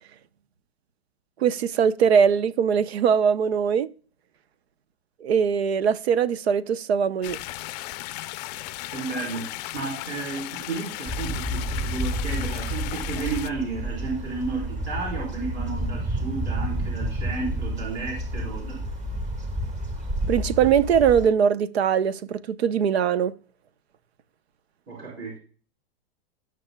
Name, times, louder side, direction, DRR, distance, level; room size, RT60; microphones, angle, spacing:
voice 1, 1.4-3.9 5.2-7.4 20.3-23.3, right 7 dB, 85° right, 0.8 m, -21 dB
sound 1, 7.2-13.5, left 18 dB, 40° left, 0.5 m, -36 dB
voice 2, 8.9-18.8 24.9-25.4, right 4 dB, 40° right, 4.1 m, -32 dB
sound 2, 11.1-21.3, right 1 dB, 25° right, 1.9 m, -30 dB
17.0 x 6.3 x 2.2 m
hypercardioid pair, 135°, 31 cm